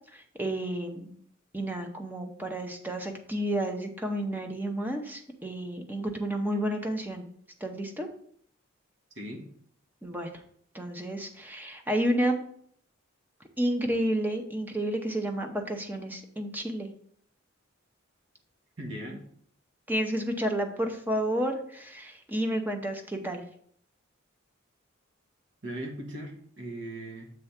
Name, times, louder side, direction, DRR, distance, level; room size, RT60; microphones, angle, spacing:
voice 1, 0.1-1.1 1.5-7.3 7.6-8.1 10.0-10.3 10.7-12.4 13.6-16.9 19.9-23.4, right 1 dB, 10° right, 4 dB, 0.7 m, -31 dB
voice 2, 18.8-19.2 25.6-27.3, right 1 dB, 65° right, 0 dB, 1.2 m, -38 dB
6.8 x 3.4 x 5.7 m, 0.63 s
head